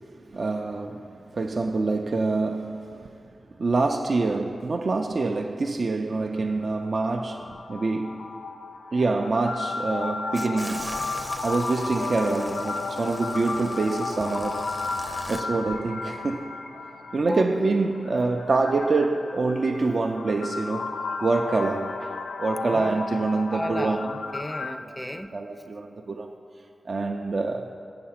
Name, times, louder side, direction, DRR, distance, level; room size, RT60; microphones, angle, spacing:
voice 1, 0.3-1.0 1.3-2.9 3.6-8.3 8.9-11.0 11.4-14.7 15.3-16.5 17.1-20.9 21.2-24.1 24.9-25.0 25.3-26.3 26.9-27.7, right 3 dB, 65° right, 0.3 m, -26 dB
sound 1, 6.4-24.7, left 4 dB, 85° left, 0.3 m, -34 dB
sound 2, 10.3-15.4, right 1 dB, 30° right, 0.6 m, -40 dB
voice 2, 22.6-23.0 23.5-25.3, left 1 dB, 10° left, 0.4 m, -32 dB
8.5 x 5.7 x 5.7 m
cardioid pair, 40°, 0 cm